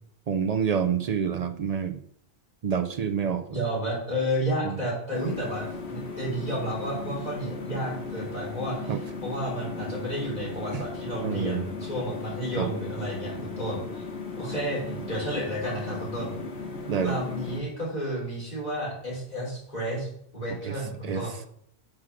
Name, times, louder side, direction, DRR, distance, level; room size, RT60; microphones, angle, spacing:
voice 1, 0.3-2.0 2.6-3.4 4.6-4.7 8.9-9.0 11.2-11.6 12.6-12.7 16.9-17.2 20.6-20.7 21.0-21.3, right 7 dB, 55° right, 9 dB, 0.4 m, -27 dB
voice 2, 3.5-14.0 14.4-16.3 17.0-20.1 20.3-21.3, equal, 40° left, -5 dB, 3.4 m, -31 dB
sound 1, 5.1-17.6, left 4 dB, 80° left, 1.4 m, -37 dB
6.2 x 4.3 x 6.2 m, 0.66 s
omnidirectional pair, 1.1 m